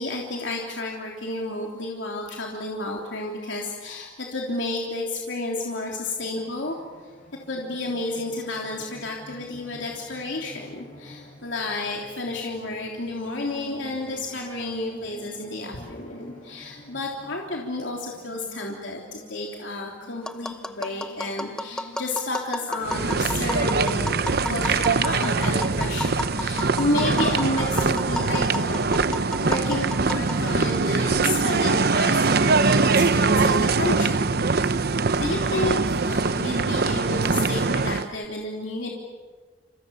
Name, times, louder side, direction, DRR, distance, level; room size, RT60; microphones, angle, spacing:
voice 1, 0.0-7.1 7.5-38.9, left 2 dB, 80° left, -1 dB, 3.3 m, -31 dB
sound 1, 6.2-24.9, equal, 45° left, 7.0 m, -47 dB
Tap, 20.2-30.7, left 1 dB, 5° left, 0.8 m, -33 dB
sound 2, 22.8-38.1, right 4 dB, 55° right, 0.8 m, -22 dB
29.5 x 27.5 x 7.1 m, 1.4 s
head